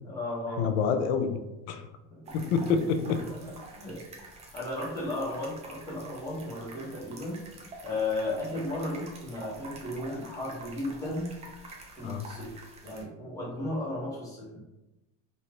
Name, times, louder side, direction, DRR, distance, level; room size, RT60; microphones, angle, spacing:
voice 1, 0.0-0.9 2.1-2.5 3.3-4.0 4.5-7.4 7.8-11.3 12.0-12.5 12.8-14.6, left 2 dB, 10° left, -7 dB, 1.1 m, -35 dB
voice 2, 0.6-1.4 1.7-1.8 2.3-3.2 12.0-12.3, left 6 dB, 80° left, 8 dB, 0.5 m, -27 dB
sound 1, 2.3-13.0, right 2 dB, 20° right, 0.4 m, -48 dB
3.2 x 2.6 x 2.5 m, 0.99 s
cardioid pair, 140°, 32 cm